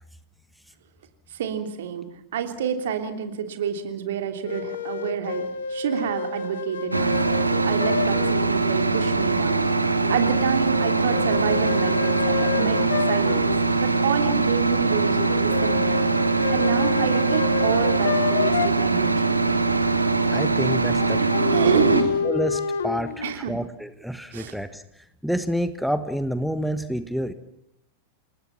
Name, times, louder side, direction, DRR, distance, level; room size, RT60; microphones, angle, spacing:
voice 1, 1.3-2.1 2.3-9.6 10.1-16.1 16.5-19.4 21.2-22.2 23.2-23.6 24.3-24.5, right 8 dB, 60° right, 7 dB, 3.1 m, -28 dB
sound 1, 4.5-8.5 10.0-13.6 15.2-18.7 20.7-23.4, left 7 dB, 65° left, 1.5 m, -29 dB
sound 2, 6.9-22.0, right 3 dB, 85° right, 1.8 m, -22 dB
voice 2, 20.3-21.2 22.2-27.3, equal, ahead, 11 dB, 1.4 m, -28 dB
28.5 x 20.0 x 5.9 m, 0.80 s
figure-of-eight pair, 90°, 0 cm